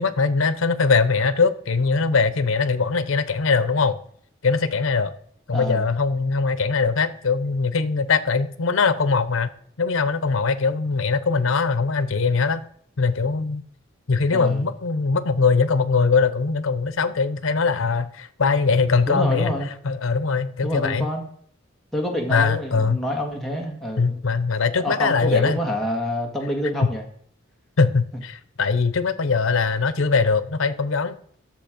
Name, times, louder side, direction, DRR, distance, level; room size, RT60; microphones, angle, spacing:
voice 1, 0.0-4.0 4.4-5.1 5.5-9.5 9.8-12.6 13.0-13.6 14.1-19.5 19.8-21.1 22.3-23.0 24.0-25.6 27.8-31.1, left 4 dB, 90° left, 0.7 m, -21 dB
voice 2, 5.5-5.9 14.3-14.6 19.1-19.7 20.6-21.2 21.9-24.2 24.8-27.0, equal, ahead, 1.8 m, -27 dB
10.5 x 6.9 x 5.1 m
head